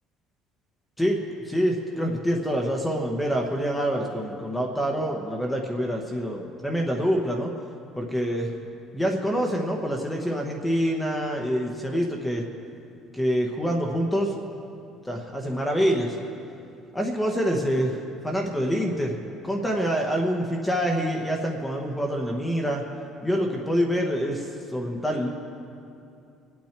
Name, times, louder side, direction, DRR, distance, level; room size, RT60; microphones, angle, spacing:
voice 1, 1.0-7.5 7.9-8.5 8.9-12.4 13.1-14.4 15.0-16.2 16.9-19.2 19.4-22.8 23.2-25.3, equal, 5° left, 1 dB, 0.9 m, -26 dB
25.0 x 8.6 x 4.5 m, 2.6 s
cardioid pair, 175°, 0 cm